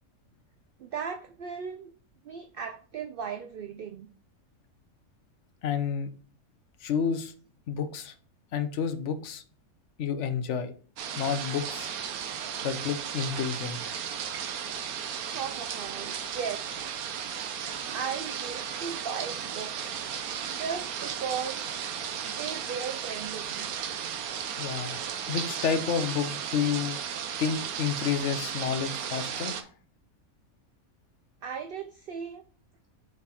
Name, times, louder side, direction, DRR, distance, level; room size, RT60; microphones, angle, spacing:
voice 1, 0.8-1.9 2.2-4.1 15.3-16.6 17.9-20.2 20.4-21.6 22.2-23.7 31.4-32.4, right 6 dB, 65° right, 7 dB, 0.5 m, -37 dB
voice 2, 5.6-6.1 6.8-7.3 7.7-8.1 8.5-9.4 10.0-10.7 11.2-11.9 12.6-13.8 24.6-25.0 25.3-27.0 27.4-29.7, left 7 dB, 60° left, 9 dB, 1.0 m, -30 dB
sound 1, 11.0-29.6, right 8 dB, 85° right, 1.2 m, -35 dB
6.6 x 4.1 x 4.2 m, 0.40 s
omnidirectional pair, 1.5 m